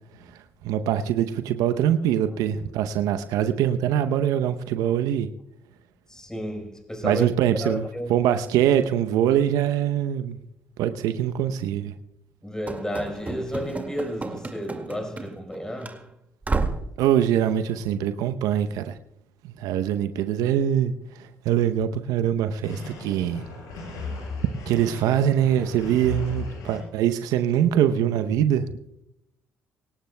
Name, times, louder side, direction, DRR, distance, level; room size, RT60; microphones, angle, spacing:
voice 1, 0.6-5.3 7.0-10.4 10.8-11.9 17.0-19.0 19.6-23.5 24.7-28.7, right 10 dB, 70° right, 0.7 m, -23 dB
voice 2, 6.1-7.3 7.6-8.3 12.4-16.1, equal, 10° left, 4.6 m, -32 dB
Run / Slam, 12.7-15.6 15.8-16.0 16.4-16.9, right 3 dB, 25° right, 2.0 m, -31 dB
sound 1, 22.6-26.8, left 3 dB, 70° left, 6.3 m, -36 dB
24.5 x 18.0 x 2.2 m
hypercardioid pair, 50°, 6 cm